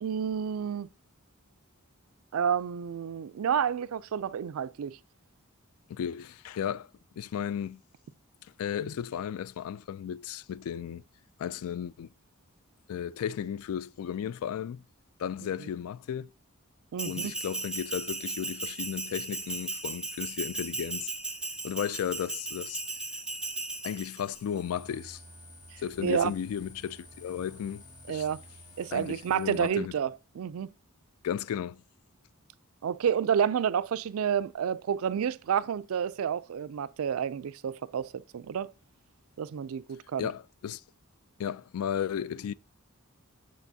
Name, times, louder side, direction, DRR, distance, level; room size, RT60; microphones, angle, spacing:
voice 1, 0.0-0.9 2.3-5.0 16.9-17.3 26.0-26.3 28.1-28.4 28.8-30.7 32.8-38.7 39.4-40.3, right 8 dB, 70° right, 0.4 m, -30 dB
voice 2, 5.9-6.9 7.2-7.8 8.6-11.0 11.4-12.1 12.9-14.8 15.2-16.3 17.0-21.1 21.6-22.8 23.8-25.2 25.8-28.3 28.9-29.9 31.2-31.8 40.2-40.8 41.4-42.5, left 8 dB, 70° left, 0.3 m, -34 dB
Bell, 17.0-24.4, right 2 dB, 5° right, 0.5 m, -36 dB
sound 1, 24.3-29.7, left 1 dB, 90° left, 2.0 m, -51 dB
8.2 x 6.4 x 2.7 m
head